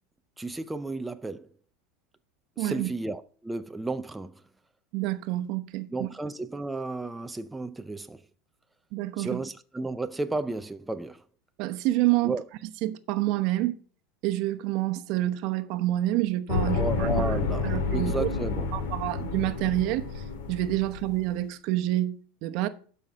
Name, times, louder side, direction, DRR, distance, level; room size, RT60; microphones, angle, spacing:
voice 1, 0.4-1.5 2.6-4.4 5.9-8.2 9.2-11.2 12.2-12.4 16.7-18.7, right 2 dB, 10° right, 0.5 m, -33 dB
voice 2, 2.6-2.9 4.9-6.1 8.9-9.4 11.6-12.3 12.8-13.8 14.2-17.1 17.6-18.3 18.7-22.7, right 16 dB, 60° right, 0.9 m, -28 dB
sound 1, 16.5-21.3, left 4 dB, 75° left, 2.1 m, -30 dB
12.0 x 5.6 x 4.9 m
supercardioid pair, 120°, 0 cm